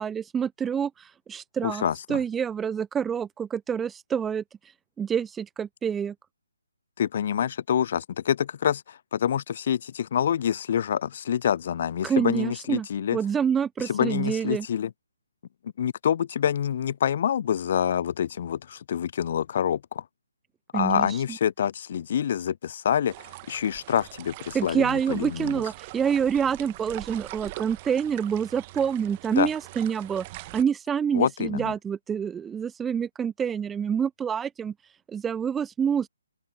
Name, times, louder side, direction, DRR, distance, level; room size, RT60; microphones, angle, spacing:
voice 1, 0.0-6.1 12.0-14.7 20.7-21.4 24.5-36.1, right 7 dB, 10° right, 0.7 m, -27 dB
voice 2, 1.6-2.2 7.0-13.2 13.8-14.9 15.8-20.0 20.7-23.1 23.5-25.6 29.4-29.5 31.1-31.7, left 9 dB, 40° left, 0.4 m, -26 dB
sound 1, 23.1-30.6, right 20 dB, 25° right, 1.4 m, -42 dB
open air
figure-of-eight pair, 140°, 0 cm